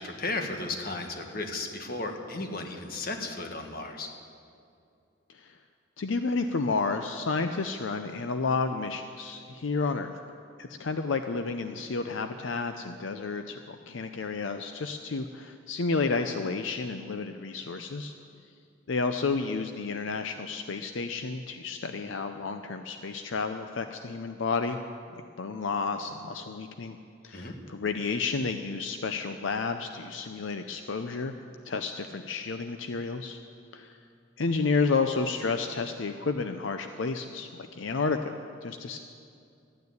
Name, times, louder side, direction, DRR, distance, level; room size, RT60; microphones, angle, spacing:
voice 1, 0.0-4.1 27.3-27.5, left 2 dB, 45° left, 4 dB, 1.5 m, -34 dB
voice 2, 6.0-10.1 10.6-18.1 18.9-24.8 25.1-27.0 27.2-31.4 31.6-33.4 33.7-34.0 34.4-38.3 38.6-39.0, left 4 dB, 75° left, 7 dB, 0.6 m, -31 dB
13.5 x 9.5 x 9.5 m, 2.4 s
head